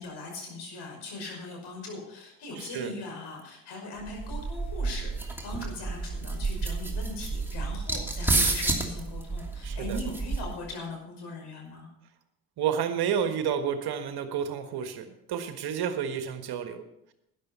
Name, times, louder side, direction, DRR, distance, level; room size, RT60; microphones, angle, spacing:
voice 1, 0.0-11.9, left 2 dB, 60° left, 1 dB, 5.5 m, -40 dB
voice 2, 2.6-2.9 9.6-10.0 12.6-16.8, right 8 dB, 55° right, 8 dB, 1.6 m, -30 dB
sound 1, 4.1-10.7, right 3 dB, 5° right, 2.8 m, -30 dB
12.5 x 10.5 x 5.6 m, 0.82 s
hypercardioid pair, 55°, 46 cm